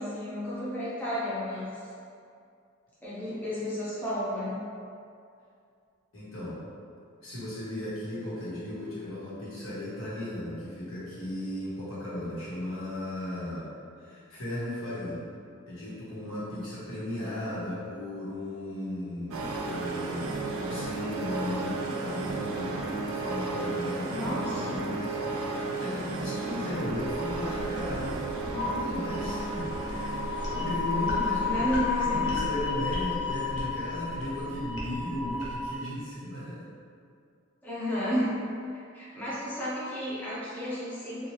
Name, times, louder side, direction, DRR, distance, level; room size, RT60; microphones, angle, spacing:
voice 1, 0.0-1.8 3.0-4.6 24.1-24.9 31.4-32.3 37.6-38.4 38.7-41.3, equal, 10° left, -11 dB, 0.5 m, -32 dB
voice 2, 6.1-6.6 7.2-13.7 14.0-15.2 15.7-31.7 32.0-36.6, left 1 dB, 75° left, -9 dB, 1.0 m, -36 dB
sound 1, 19.3-34.4, right 3 dB, 90° right, 0.4 m, -34 dB
sound 2, 26.9-35.8, left 4 dB, 55° left, 0.6 m, -33 dB
2.9 x 2.3 x 3.1 m, 2.4 s
head